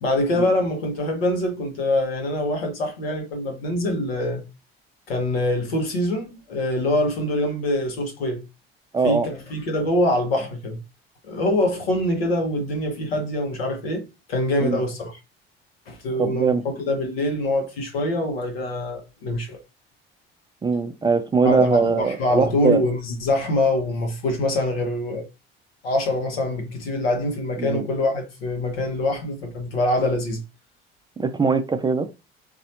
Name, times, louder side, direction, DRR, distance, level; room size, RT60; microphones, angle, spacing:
voice 1, 0.0-4.4 5.1-8.4 9.0-10.8 11.2-14.0 14.3-15.2 15.9-16.5 16.9-19.6 21.4-25.3 25.8-30.4, left 1 dB, 75° left, 1.1 m, -24 dB
voice 2, 8.9-9.3 14.6-14.8 16.2-16.6 20.6-22.8 27.6-27.8 31.2-32.1, right 4 dB, 15° right, 0.4 m, -21 dB
4.1 x 2.6 x 2.6 m
figure-of-eight pair, 55°, 30 cm